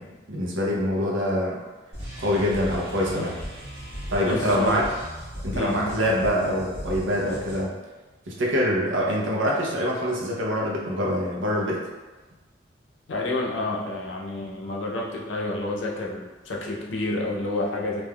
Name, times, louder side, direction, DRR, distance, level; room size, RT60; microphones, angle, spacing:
voice 1, 0.0-1.6 2.2-3.4 4.1-4.8 5.4-7.7 8.3-11.8, equal, 80° right, -3 dB, 0.6 m, -25 dB
sound 1, 1.9-7.6, equal, 35° right, 1.1 m, -37 dB
voice 2, 4.2-4.8 5.5-5.9 13.1-18.0, left 2 dB, 80° left, -2 dB, 0.5 m, -29 dB
3.4 x 2.4 x 2.2 m, 1.2 s
head